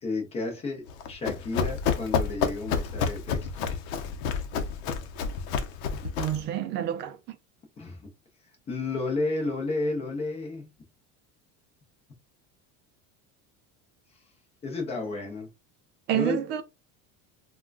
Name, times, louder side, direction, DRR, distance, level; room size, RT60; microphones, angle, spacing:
voice 1, 0.0-3.5 7.8-8.1 8.7-10.7 14.6-15.5 16.1-16.4, left 3 dB, 20° left, 0.7 m, -32 dB
Run, 0.9-6.5, left 6 dB, 75° left, 0.7 m, -29 dB
voice 2, 6.2-7.2 16.1-16.6, right 11 dB, 35° right, 0.4 m, -28 dB
3.6 x 2.3 x 2.4 m
cardioid pair, 175°, 33 cm